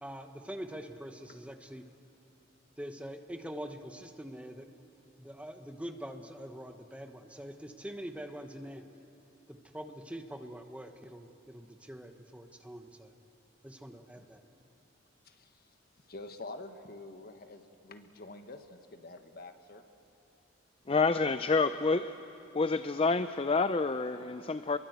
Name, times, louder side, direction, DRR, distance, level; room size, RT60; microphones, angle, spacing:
voice 1, 0.0-1.8 2.8-4.7 5.2-8.8 9.5-13.1 13.6-14.4, equal, 5° right, 6 dB, 1.1 m, -44 dB
voice 2, 15.2-15.7 16.0-19.8, left 2 dB, 50° left, 7 dB, 1.5 m, -47 dB
voice 3, 20.9-22.2 22.5-24.8, left 4 dB, 30° left, 11 dB, 0.5 m, -28 dB
29.0 x 22.5 x 8.1 m, 2.8 s
head